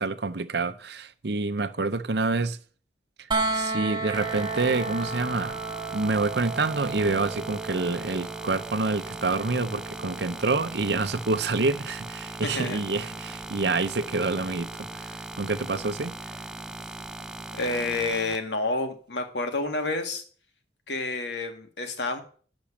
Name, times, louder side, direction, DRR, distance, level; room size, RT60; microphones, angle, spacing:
voice 1, 0.0-2.6 3.5-5.6 5.9-16.1, right 3 dB, 65° right, 0.8 m, -27 dB
sound 1, 3.3-15.1 17.0-17.1, right 3 dB, 25° right, 1.6 m, -35 dB
sound 2, 4.1-18.4, right 1 dB, 5° right, 0.5 m, -39 dB
voice 2, 12.4-12.8 17.5-20.2 20.9-22.2, left 2 dB, 80° left, 2.0 m, -29 dB
10.0 x 6.2 x 7.2 m
head